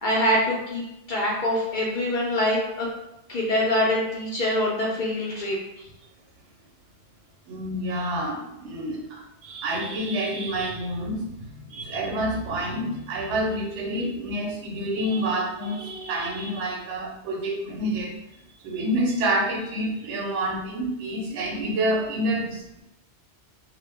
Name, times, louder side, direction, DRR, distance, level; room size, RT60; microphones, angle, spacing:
voice 1, 0.0-2.9 3.3-5.6, left 1 dB, 60° left, -4 dB, 0.6 m, -24 dB
voice 2, 7.5-18.2 18.6-22.8, right 1 dB, 90° right, 1 dB, 0.9 m, -28 dB
2.1 x 2.0 x 3.3 m, 0.87 s
omnidirectional pair, 1.2 m